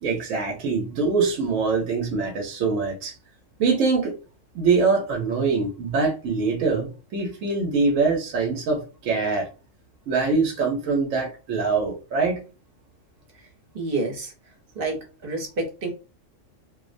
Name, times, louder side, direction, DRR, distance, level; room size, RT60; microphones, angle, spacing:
voice 1, 0.0-3.1 3.6-4.2 4.5-9.5 10.1-12.4, right 4 dB, 80° right, 1.0 m, -23 dB
voice 2, 13.7-14.3 14.8-15.0 15.2-15.9, right 3 dB, 50° right, 0.9 m, -28 dB
2.5 x 2.0 x 2.5 m
omnidirectional pair, 1.3 m